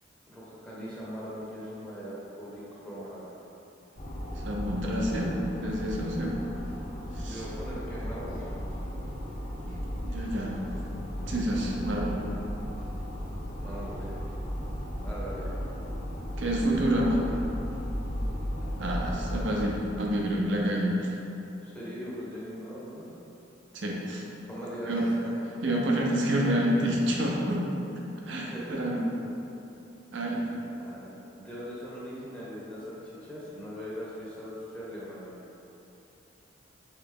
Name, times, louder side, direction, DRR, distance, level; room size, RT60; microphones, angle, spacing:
voice 1, 0.3-3.4 7.2-8.5 13.6-14.4 15.0-15.5 21.6-23.0 24.5-25.4 28.5-28.8 30.8-35.4, equal, 5° left, -8 dB, 0.7 m, -40 dB
sound 1, 4.0-19.6, equal, 45° left, 0.7 m, -35 dB
voice 2, 4.4-5.3 5.6-6.4 7.1-7.4 9.6-9.7 10.0-10.6 11.3-12.2 16.4-17.2 18.8-21.2 23.7-24.3 24.8-25.1 25.6-27.6 28.3-29.0 30.1-30.4, right 1 dB, 75° right, -2 dB, 0.7 m, -28 dB
3.8 x 3.2 x 3.6 m, 2.9 s
head